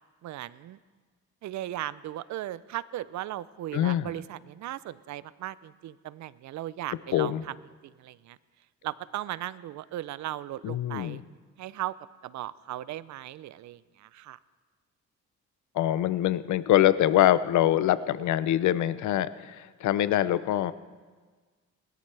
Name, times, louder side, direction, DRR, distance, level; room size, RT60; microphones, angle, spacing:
voice 1, 0.2-0.8 1.4-7.5 7.8-8.4 8.8-11.2 11.6-11.9 12.2-14.4, right 14 dB, 70° right, 18 dB, 0.5 m, -37 dB
voice 2, 3.7-4.1 7.1-7.4 10.6-11.2 15.7-20.7, left 12 dB, 75° left, 15 dB, 0.6 m, -24 dB
21.0 x 13.0 x 3.3 m, 1.4 s
cardioid pair, 90°, 30 cm